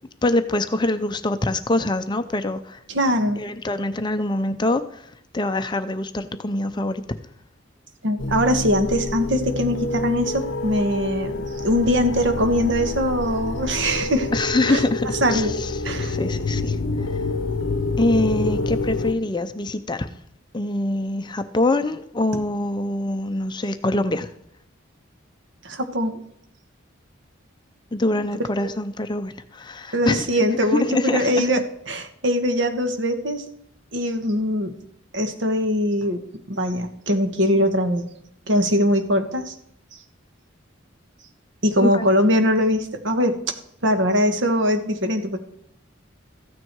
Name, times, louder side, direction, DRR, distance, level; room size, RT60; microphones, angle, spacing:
voice 1, 0.2-2.8 3.4-7.2 14.3-15.7 16.0-17.1 18.0-20.1 20.5-24.3 27.9-30.3 30.7-31.5 41.8-42.1, left 2 dB, 25° left, 9 dB, 0.5 m, -24 dB
voice 2, 2.9-3.4 8.0-14.3 14.7-14.8 15.2-15.5 15.8-16.2 25.6-26.2 28.6-28.7 29.9-33.4 33.9-34.8 35.1-36.2 36.5-38.0 38.5-39.5 41.6-43.6 43.8-45.4, equal, 65° right, 7 dB, 1.4 m, -22 dB
sound 1, 8.2-19.1, left 2 dB, 70° left, 0.7 m, -27 dB
14.5 x 9.3 x 4.6 m, 0.73 s
head